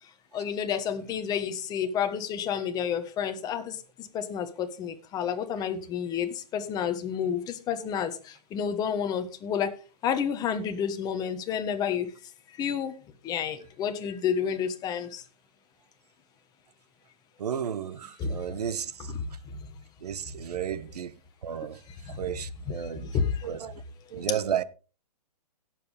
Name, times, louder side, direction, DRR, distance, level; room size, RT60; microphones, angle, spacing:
voice 1, 0.3-9.7 10.0-12.1 12.5-12.9 13.2-15.2 18.2-18.4 19.0-19.6 22.0-22.3 22.6-23.5 24.3-24.4, left 7 dB, 20° left, 1.3 m, -30 dB
voice 2, 17.4-18.9 20.0-21.1 21.4-21.8 22.2-23.1 23.4-23.7 24.1-24.6, right 9 dB, 70° right, 1.0 m, -32 dB
17.0 x 7.6 x 3.4 m
hypercardioid pair, 145°, 21 cm